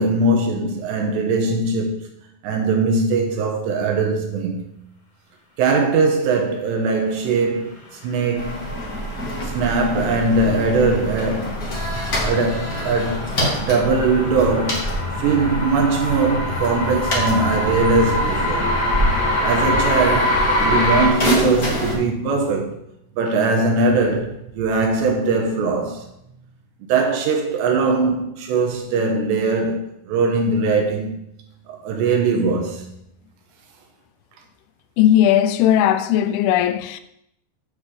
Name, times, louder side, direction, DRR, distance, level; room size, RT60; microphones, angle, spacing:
voice 1, 0.0-2.1 2.4-4.6 5.6-7.7 8.0-8.7 9.4-11.7 12.2-13.3 13.6-14.9 15.2-18.7 19.4-22.8 23.2-26.1 26.9-31.1 31.7-33.0, right 3 dB, 70° right, 3.1 m, -20 dB
sound 1, 8.3-21.1, left 1 dB, 60° left, 3.8 m, -25 dB
sound 2, 8.3-22.0, equal, 40° left, 1.4 m, -27 dB
voice 2, 35.0-37.0, left 11 dB, 85° left, 3.0 m, -17 dB
8.9 x 7.3 x 4.8 m
omnidirectional pair, 5.5 m